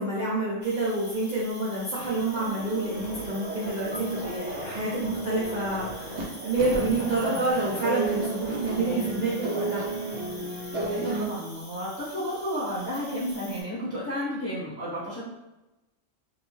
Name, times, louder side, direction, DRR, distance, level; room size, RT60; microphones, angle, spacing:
voice 1, 0.0-9.8, right 2 dB, 50° right, -8 dB, 0.5 m, -28 dB
Cricket, 0.6-13.6, equal, 30° right, 1.1 m, -46 dB
sound 1, 1.9-6.2 6.6-11.2, right 2 dB, 65° right, 1.0 m, -34 dB
sound 2, 3.0-10.4, left 2 dB, 65° left, 1.1 m, -42 dB
voice 2, 10.9-15.2, equal, 15° left, -10 dB, 0.8 m, -32 dB
2.6 x 2.1 x 3.0 m, 0.99 s
omnidirectional pair, 1.3 m